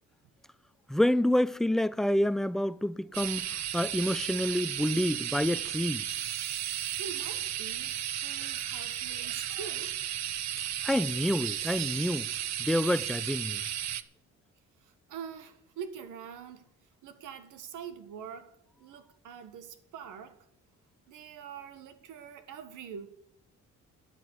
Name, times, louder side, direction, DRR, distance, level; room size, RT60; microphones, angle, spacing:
voice 1, 0.9-6.0 10.8-12.3 12.6-13.6, left 1 dB, ahead, 0.4 m, -28 dB
sound 1, 3.1-14.0, right 11 dB, 60° right, 0.8 m, -34 dB
voice 2, 7.0-10.0 14.8-16.7 17.0-20.5 21.1-23.1, right 7 dB, 85° right, 1.5 m, -44 dB
9.5 x 9.5 x 8.2 m
cardioid pair, 90°, 30 cm